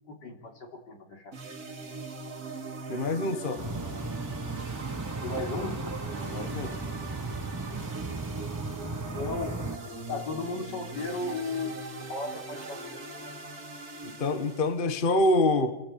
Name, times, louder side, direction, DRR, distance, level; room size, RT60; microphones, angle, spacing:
voice 1, 0.1-1.4 5.2-5.8 7.9-8.0 8.8-9.6 10.1-12.8, left 3 dB, 80° left, 2 dB, 4.0 m, -35 dB
sound 1, 1.3-14.8, right 3 dB, 60° right, 2.9 m, -41 dB
voice 2, 2.9-3.6 6.3-6.8 14.0-15.7, left 2 dB, 30° left, 9 dB, 1.5 m, -26 dB
sound 2, 3.6-9.8, right 3 dB, 20° right, 0.6 m, -36 dB
29.0 x 16.0 x 8.6 m, 1.1 s
omnidirectional pair, 1.8 m